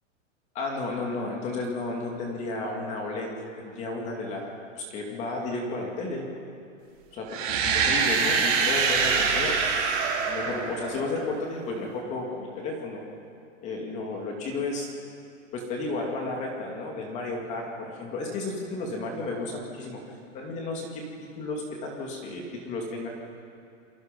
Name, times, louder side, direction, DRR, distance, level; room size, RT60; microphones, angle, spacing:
voice 1, 0.5-3.3 3.6-6.3 7.1-9.6 10.2-13.0 13.6-14.9 15.5-20.0 20.3-23.1, left 2 dB, 20° left, 0 dB, 2.5 m, -33 dB
sound 1, 7.3-11.2, right 5 dB, 30° right, 4.5 m, -25 dB
29.0 x 22.0 x 5.3 m, 2.5 s
hypercardioid pair, 170°, 39 cm